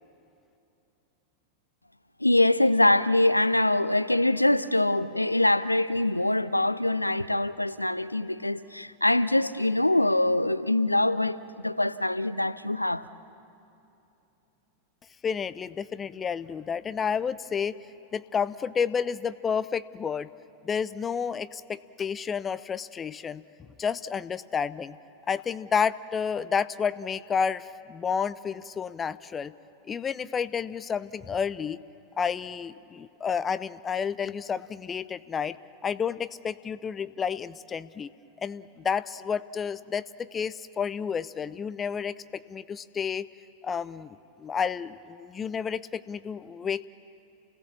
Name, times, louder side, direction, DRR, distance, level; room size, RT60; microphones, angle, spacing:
voice 1, 2.2-11.4 11.6-13.0, left 1 dB, 85° left, 0.5 m, -24 dB
voice 2, 15.2-17.8 18.1-20.3 20.6-23.4 23.8-25.0 25.3-29.5 29.8-31.8 32.2-35.6 35.8-38.1 38.4-43.3 43.6-46.9, left 6 dB, 20° left, 0.5 m, -30 dB
29.0 x 17.0 x 7.2 m
figure-of-eight pair, 90°, 0 cm